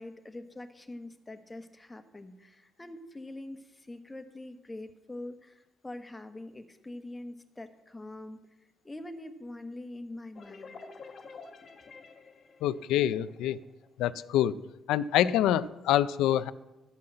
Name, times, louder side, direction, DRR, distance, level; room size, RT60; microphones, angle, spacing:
voice 1, 0.0-8.4 8.8-10.7, left 1 dB, 15° left, 8 dB, 1.2 m, -44 dB
sound 1, 10.3-13.9, left 4 dB, 50° left, 1.4 m, -49 dB
voice 2, 12.6-13.6 14.0-14.6 14.9-16.5, left 12 dB, 90° left, 15 dB, 0.4 m, -26 dB
12.5 x 5.7 x 7.7 m, 1.0 s
cardioid pair, 90°, 0 cm